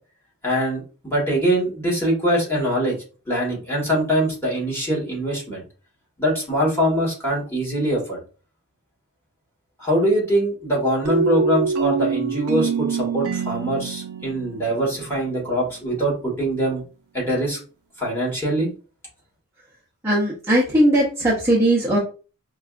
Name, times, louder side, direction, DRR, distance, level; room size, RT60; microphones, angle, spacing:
voice 1, 0.4-3.0 3.3-5.6 6.2-8.2 9.8-16.8 17.1-17.6 18.0-18.7, right 1 dB, 10° left, -4 dB, 1.4 m, -23 dB
sound 1, 11.0-15.7, right 5 dB, 65° right, 0.5 m, -25 dB
voice 2, 20.0-22.0, right 1 dB, 10° right, -6 dB, 0.7 m, -18 dB
4.6 x 2.3 x 2.4 m, 0.36 s
head